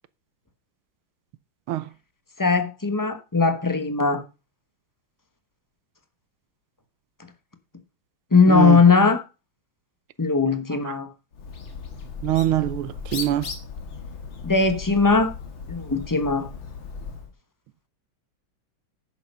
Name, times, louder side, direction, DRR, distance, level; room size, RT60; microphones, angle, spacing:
voice 1, 2.4-4.2 8.3-9.2 10.2-11.1 14.4-15.3 15.7-16.5, left 4 dB, 20° left, 0.6 m, -19 dB
voice 2, 8.5-8.8 12.2-13.5, right 13 dB, 90° right, 1.6 m, -23 dB
Bird, 11.3-17.3, left 5 dB, 70° left, 2.7 m, -37 dB
10.5 x 7.5 x 5.5 m
omnidirectional pair, 2.3 m